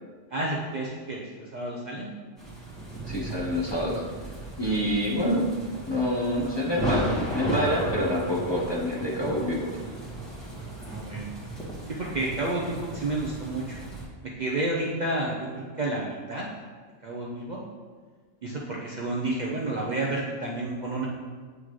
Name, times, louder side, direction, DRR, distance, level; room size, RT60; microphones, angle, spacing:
voice 1, 0.3-2.1 4.6-4.7 10.8-11.3 12.0-13.8 14.4-16.4 17.0-17.6 18.4-21.1, right 2 dB, 45° right, -4 dB, 0.7 m, -30 dB
sound 1, 2.4-14.0, right 1 dB, ahead, 1.6 m, -35 dB
voice 2, 3.1-4.0 4.6-5.5 5.9-9.7, equal, 25° left, -5 dB, 1.0 m, -27 dB
9.2 x 3.7 x 3.2 m, 1.5 s
omnidirectional pair, 1.2 m